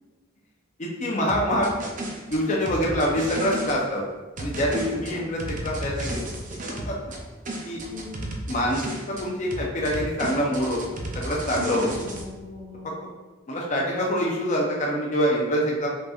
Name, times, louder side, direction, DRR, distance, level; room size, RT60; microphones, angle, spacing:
voice 1, 0.8-1.7 2.3-4.0 4.4-6.2 6.7-7.0 7.6-7.8 8.5-8.8 9.1-10.9 11.1-11.9 13.5-15.9, equal, 35° left, -3 dB, 0.6 m, -25 dB
sound 1, 1.3-3.8 4.4-7.2 7.5-9.3 9.5-12.2, right 1 dB, 40° right, 0.6 m, -33 dB
voice 2, 4.8-5.4 7.9-8.4 11.5-13.1, left 2 dB, 90° left, -3 dB, 1.2 m, -39 dB
5.2 x 4.1 x 2.4 m, 1.2 s
head